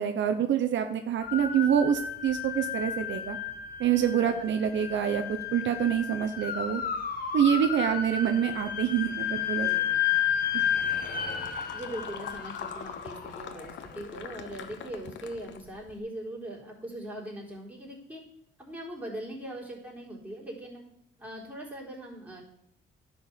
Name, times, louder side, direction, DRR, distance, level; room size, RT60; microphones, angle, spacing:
voice 1, 0.0-3.4 3.8-6.8 7.3-9.7 10.5-10.6, right 9 dB, 70° right, 7 dB, 0.8 m, -26 dB
sound 1, 1.2-14.3, left 8 dB, 50° left, 1.6 m, -32 dB
voice 2, 9.6-10.1 10.8-11.2 11.7-18.2 18.6-20.8 21.2-22.4, right 1 dB, 5° right, -4 dB, 3.8 m, -41 dB
sound 2, 10.7-16.0, left 8 dB, 70° left, 1.0 m, -43 dB
10.5 x 4.6 x 7.3 m, 0.71 s
cardioid pair, 90°, 20 cm